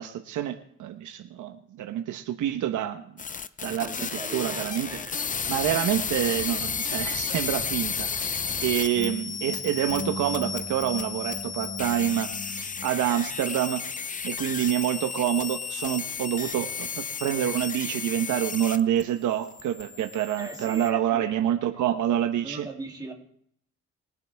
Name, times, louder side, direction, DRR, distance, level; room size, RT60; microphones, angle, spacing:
voice 1, 0.0-3.0 3.6-3.9 4.3-4.9 5.5-22.7, right 11 dB, 80° right, 6 dB, 1.1 m, -27 dB
sound 1, 3.2-19.0 19.3-20.9, left 6 dB, 25° left, 0.6 m, -33 dB
voice 2, 3.6-5.1 20.4-21.5 22.4-23.1, right 3 dB, 15° right, -1 dB, 2.9 m, -40 dB
sound 2, 7.2-12.9, left 3 dB, 55° left, 4.2 m, -40 dB
22.0 x 7.8 x 3.5 m, 0.66 s
cardioid pair, 90°, 30 cm